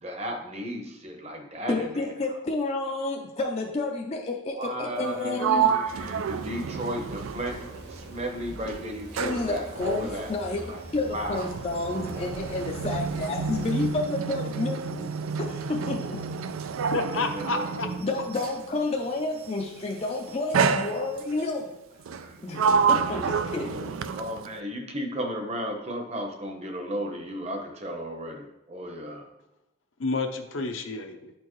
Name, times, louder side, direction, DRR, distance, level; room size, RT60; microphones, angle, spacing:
voice 1, 0.0-1.9 4.5-7.6 7.9-10.8 11.1-11.5 11.9-12.3 17.2-18.0 22.3-22.4 23.7-29.3, equal, 30° right, 3 dB, 0.9 m, -34 dB
voice 2, 1.7-6.0 9.2-10.6 10.9-15.1 15.4-16.3 18.0-22.0 22.4-23.8 24.1-24.2, left 2 dB, 30° left, 0 dB, 0.4 m, -30 dB
Sliding door, 5.0-8.3 8.6-18.7 19.6-19.9 20.5-21.5 22.0-24.6, right 6 dB, 90° right, 0.4 m, -29 dB
sound 1, 5.9-13.9, equal, 50° right, 1.2 m, -44 dB
voice 3, 16.9-17.9 30.0-31.3, left 3 dB, 75° left, 5 dB, 0.7 m, -29 dB
9.2 x 4.4 x 3.1 m, 0.89 s
head